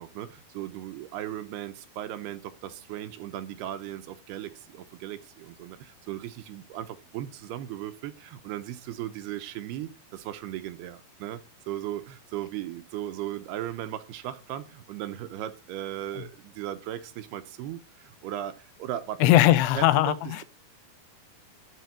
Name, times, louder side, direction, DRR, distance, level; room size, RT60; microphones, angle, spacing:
voice 1, 0.0-11.4 11.7-19.3 19.7-20.4, right 12 dB, 90° right, 3.0 m, -37 dB
voice 2, 19.2-20.4, left 14 dB, 90° left, 2.8 m, -20 dB
12.5 x 4.4 x 7.4 m
omnidirectional pair, 4.5 m